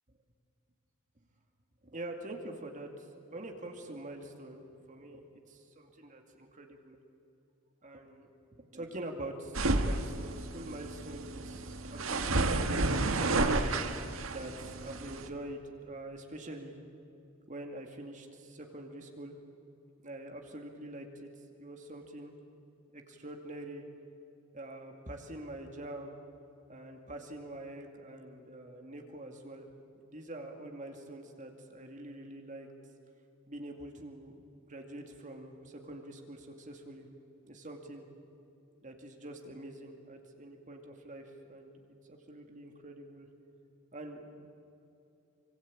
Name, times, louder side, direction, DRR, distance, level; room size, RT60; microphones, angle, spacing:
voice 1, 1.8-4.6 4.9-7.0 7.8-13.6 14.3-16.7 17.5-19.4 20.0-21.3 21.6-22.3 22.9-23.8 24.5-26.2 26.7-29.7 30.0-32.7 33.5-34.4 34.6-37.1 37.5-38.1 38.8-43.3 43.9-44.6, right 1 dB, 40° right, 3 dB, 2.4 m, -45 dB
sound 1, 9.5-15.3, right 2 dB, 85° right, 1.7 m, -31 dB
25.0 x 24.5 x 8.8 m, 2.8 s
head